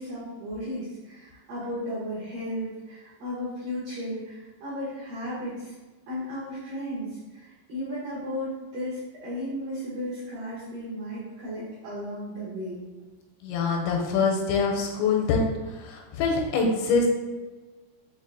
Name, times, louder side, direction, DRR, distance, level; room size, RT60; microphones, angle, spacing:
voice 1, 0.0-5.8 6.1-12.8, equal, 75° right, -9 dB, 2.0 m, -35 dB
voice 2, 13.4-15.4 15.7-17.1, left 4 dB, 85° left, 1 dB, 3.0 m, -24 dB
6.8 x 2.5 x 2.5 m, 1.2 s
omnidirectional pair, 5.2 m